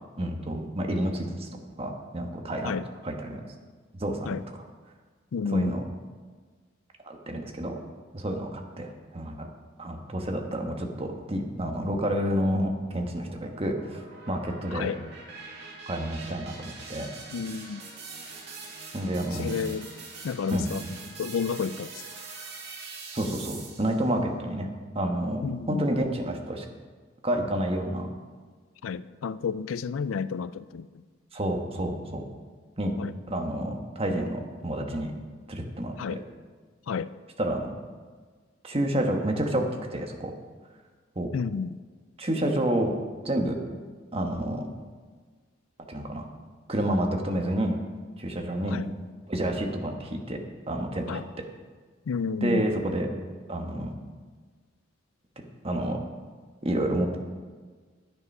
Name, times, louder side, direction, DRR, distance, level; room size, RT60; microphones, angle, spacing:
voice 1, 0.2-1.5 1.8-2.8 3.0-3.4 4.0-4.4 5.4-5.8 7.0-7.7 8.1-9.5 9.8-14.0 14.3-14.9 15.9-17.1 18.9-19.6 20.5-20.7 23.1-24.7 24.9-26.6 27.2-28.1 31.3-32.2 32.8-33.0 33.3-35.1 35.5-36.2 37.4-37.7 38.6-39.6 39.9-40.3 41.1-41.3 42.2-42.9 43.2-43.6 44.1-44.7 45.9-46.2 46.7-47.8 48.2-48.8 49.3-50.4 50.7-51.2 52.4-53.1 53.5-53.9 55.6-56.0 56.6-57.2, right 1 dB, 30° right, 3 dB, 1.3 m, -29 dB
voice 2, 5.3-5.8 14.7-15.0 17.3-17.8 19.4-19.9 20.2-20.8 21.2-21.9 25.4-25.8 28.8-30.9 33.0-33.1 36.0-36.2 36.9-37.1 41.3-41.8 48.7-48.9 51.1-51.2 52.1-52.7, left 6 dB, 90° left, 16 dB, 0.4 m, -31 dB
sound 1, 12.9-24.1, right 4 dB, 55° right, 2.4 m, -43 dB
10.5 x 9.8 x 5.4 m, 1.5 s
head